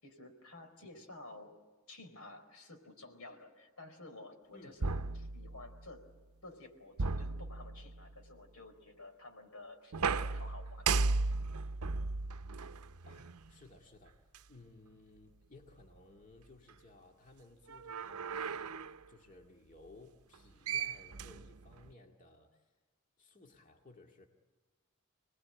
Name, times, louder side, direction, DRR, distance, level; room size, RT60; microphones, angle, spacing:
voice 1, 0.0-1.6 1.9-6.0 6.4-11.0, left 2 dB, 85° left, 5 dB, 4.5 m, -52 dB
sound 1, 4.8-5.9 7.0-8.1 9.9-13.5 14.3-14.4 17.7-19.0 20.3-20.4 20.7-21.9, right 4 dB, 90° right, 0.7 m, -36 dB
voice 2, 13.1-22.8 23.2-24.3, left 2 dB, 35° left, 1 dB, 2.1 m, -59 dB
28.0 x 20.0 x 8.9 m, 1.3 s
head